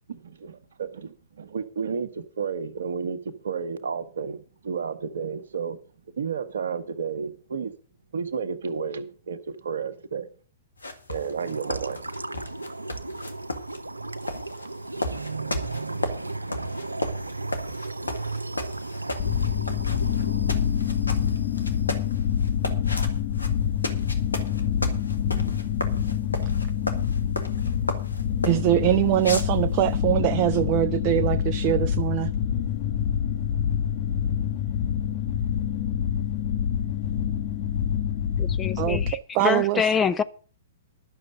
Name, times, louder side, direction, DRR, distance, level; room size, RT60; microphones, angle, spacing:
voice 1, 0.1-5.8 6.1-7.7 8.1-10.3 11.1-12.0, right 6 dB, 65° right, 1.4 m, -32 dB
sound 1, 10.8-28.7 29.2-30.0, left 1 dB, 80° left, 1.9 m, -34 dB
sound 2, 11.4-21.8, right 2 dB, 85° right, 0.8 m, -35 dB
sound 3, 19.2-39.1, left 9 dB, 45° left, 1.2 m, -26 dB
voice 2, 28.5-32.3 38.8-39.8, right 14 dB, 35° right, 0.5 m, -23 dB
voice 3, 38.4-40.2, left 6 dB, 15° left, 0.6 m, -26 dB
11.5 x 6.7 x 7.7 m
figure-of-eight pair, 110°, 0 cm